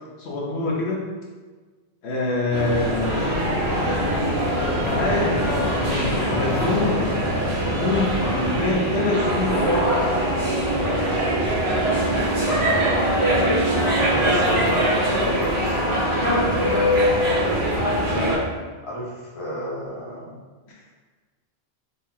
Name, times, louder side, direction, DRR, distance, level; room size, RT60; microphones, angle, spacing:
voice 1, 0.2-1.0 2.0-3.3 4.6-5.5 5.9-7.2 7.7-9.9 20.7-20.8, left 2 dB, 85° left, -3 dB, 1.1 m, -25 dB
sound 1, 2.5-18.4, equal, 80° right, 1.6 m, -22 dB
voice 2, 12.2-13.2 14.1-17.9 18.8-20.3, equal, 35° left, -5 dB, 1.0 m, -32 dB
4.0 x 3.8 x 2.7 m, 1.4 s
omnidirectional pair, 1.1 m